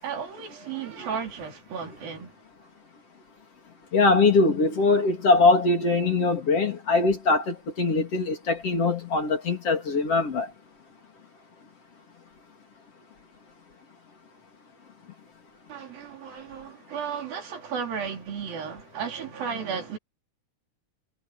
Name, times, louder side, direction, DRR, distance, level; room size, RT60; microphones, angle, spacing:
voice 1, 0.0-2.4 15.7-20.0, right 6 dB, 90° right, 5.4 m, -34 dB
voice 2, 3.9-10.5, left 3 dB, 45° left, 3.8 m, -22 dB
omnidirectional pair, 4.0 m